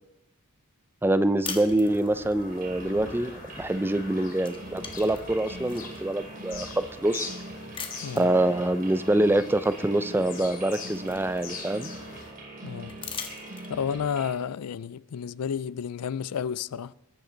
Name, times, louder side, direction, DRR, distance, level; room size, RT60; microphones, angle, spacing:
voice 1, 1.0-7.3 8.2-11.9, right 1 dB, 10° right, 0.5 m, -25 dB
sound 1, 1.4-2.4 3.8-4.1 4.4-6.0 6.6-6.7 7.7-8.3 9.8-9.9 10.3-11.8 12.9-14.0, left 5 dB, 25° left, 1.6 m, -40 dB
Bird vocalization bird call bird song, 1.8-12.3, left 4 dB, 40° left, 2.9 m, -43 dB
sound 2, 2.5-14.3, right 2 dB, 40° right, 3.0 m, -42 dB
voice 2, 12.6-13.0 13.7-16.9, left 7 dB, 85° left, 0.4 m, -31 dB
21.5 x 12.0 x 4.0 m
head